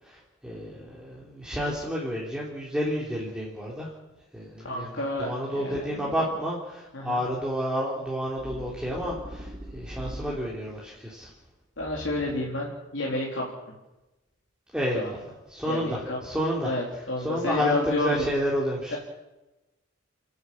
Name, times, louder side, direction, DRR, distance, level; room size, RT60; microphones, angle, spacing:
voice 1, 0.0-3.9 4.3-11.3 14.7-15.2 15.5-16.7 17.2-19.0, equal, 5° right, -5 dB, 3.4 m, -30 dB
voice 2, 4.6-6.2 6.9-7.2 11.8-13.5 15.0-15.1 15.7-16.2 16.6-18.3 18.9-19.0, left 1 dB, 70° left, -3 dB, 3.8 m, -30 dB
sound 1, 8.4-10.8 11.8-12.8, equal, 25° right, 2.9 m, -41 dB
29.5 x 11.0 x 8.7 m, 1.0 s
head